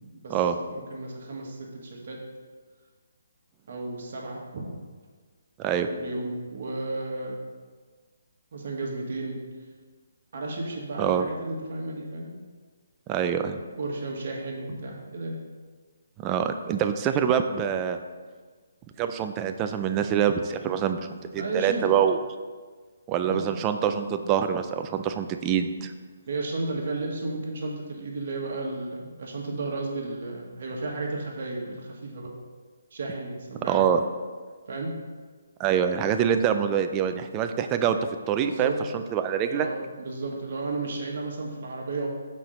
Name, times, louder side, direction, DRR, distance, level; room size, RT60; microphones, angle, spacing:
voice 1, 0.0-0.4 0.7-2.2 3.7-4.8 5.7-7.4 8.5-9.4 10.3-12.3 13.8-15.4 21.3-22.0 23.2-23.5 26.3-32.3 32.9-33.8 34.7-34.9 38.4-38.7 39.4-42.1, right 2 dB, 55° right, -1 dB, 1.5 m, -33 dB
voice 2, 13.1-13.6 16.2-18.0 19.0-22.2 23.1-25.9 33.7-34.0 35.6-38.0 38.3-39.7, right 8 dB, 20° right, 7 dB, 0.3 m, -25 dB
6.1 x 4.4 x 5.1 m, 1.5 s
hypercardioid pair, 165°, 0 cm